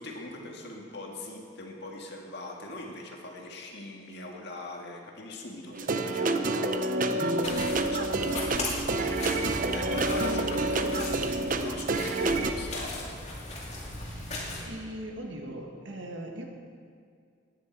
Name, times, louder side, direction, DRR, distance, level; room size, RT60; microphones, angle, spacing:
voice 1, 0.0-6.8 7.7-9.3 9.7-13.1, left 2 dB, 60° left, 0 dB, 1.9 m, -41 dB
sound 1, 5.7-12.5, right 2 dB, 45° right, 0.6 m, -28 dB
voice 2, 5.8-6.2 7.0-7.7 14.0-14.3 14.6-16.4, right 1 dB, 70° right, 2 dB, 1.7 m, -41 dB
sound 2, 7.4-14.6, left 2 dB, 35° left, 2.4 m, -37 dB
16.5 x 10.5 x 4.6 m, 2.2 s
head